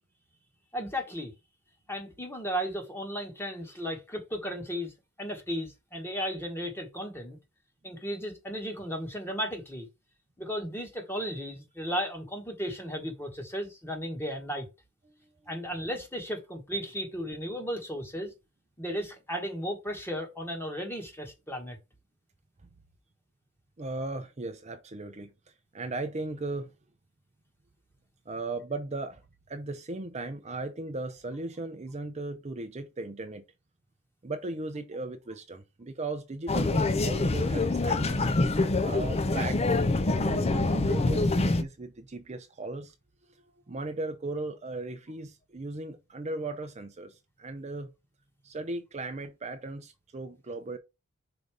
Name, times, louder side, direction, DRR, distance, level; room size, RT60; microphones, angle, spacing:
voice 1, 0.7-1.3 1.9-4.9 5.2-7.4 7.8-9.9 10.4-14.7 15.5-18.3 18.8-21.8, equal, 10° left, 1.5 m, -35 dB
voice 2, 23.8-25.3 25.7-26.7 28.3-29.2 29.5-33.4 34.2-38.3 38.8-39.8 40.1-42.9 43.3-47.9 48.4-50.8, right 2 dB, 30° right, 0.6 m, -37 dB
sound 1, 36.5-41.6, left 2 dB, 30° left, 0.5 m, -25 dB
5.3 x 4.0 x 4.8 m
head